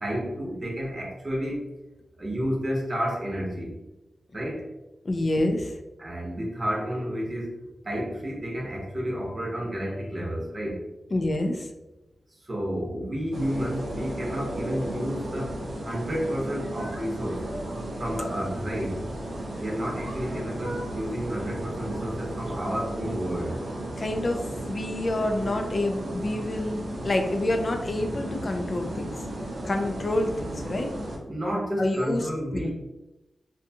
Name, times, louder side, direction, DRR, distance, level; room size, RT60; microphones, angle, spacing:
voice 1, 0.0-1.6 2.2-3.7 4.3-4.6 6.0-7.5 7.8-10.8 12.5-15.6 15.8-17.4 18.0-19.0 19.6-23.5 31.3-32.7, equal, 35° right, -3 dB, 0.8 m, -31 dB
voice 2, 5.0-5.8 11.1-11.7 24.0-29.1 29.6-30.9 31.8-32.7, left 1 dB, 50° left, 4 dB, 0.4 m, -28 dB
sound 1, 13.3-31.2, right 1 dB, 75° right, 0.6 m, -34 dB
2.6 x 2.2 x 2.7 m, 1.0 s
cardioid pair, 55°, 0 cm